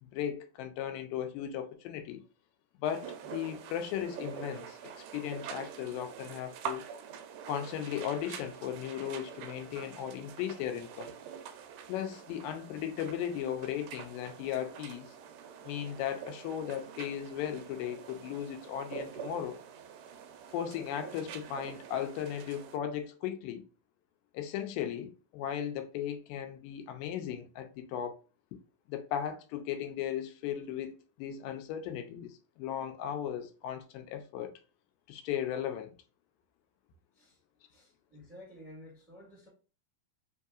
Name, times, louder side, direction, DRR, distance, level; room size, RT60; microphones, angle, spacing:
voice 1, 0.0-2.2 2.8-6.9 7.5-11.1 11.9-15.1 15.6-19.6 20.5-23.6 24.3-28.2 28.9-34.5 35.1-35.9, left 9 dB, 85° left, 2.3 m, -36 dB
sound 1, 2.8-22.8, right 7 dB, 80° right, 1.9 m, -46 dB
voice 2, 37.7-39.5, left 1 dB, 10° right, 0.8 m, -52 dB
5.3 x 2.7 x 2.4 m
omnidirectional pair, 4.0 m